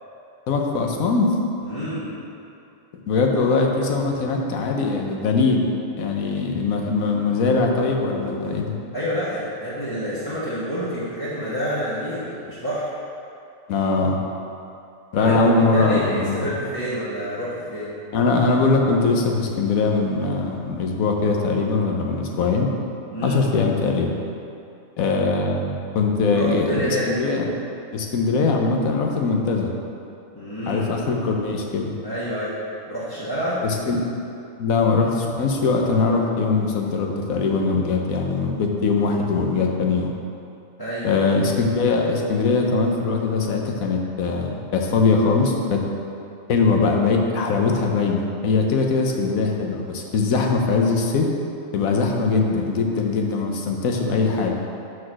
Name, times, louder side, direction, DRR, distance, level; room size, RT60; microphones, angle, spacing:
voice 1, 0.5-1.3 3.1-8.8 13.7-14.2 15.1-16.4 18.1-22.7 23.2-24.1 25.0-27.5 27.9-29.7 30.7-31.9 33.6-34.0 34.6-40.1 41.0-45.8 46.5-51.2 51.7-54.6, left 4 dB, 85° left, 1 dB, 1.3 m, -21 dB
voice 2, 1.6-2.0 8.9-12.9 15.2-17.9 23.1-23.4 26.2-27.1 30.3-30.8 32.0-32.5 32.9-33.6 40.8-41.2, equal, 15° left, -12 dB, 1.4 m, -28 dB
6.2 x 5.0 x 6.1 m, 2.6 s
omnidirectional pair, 1.4 m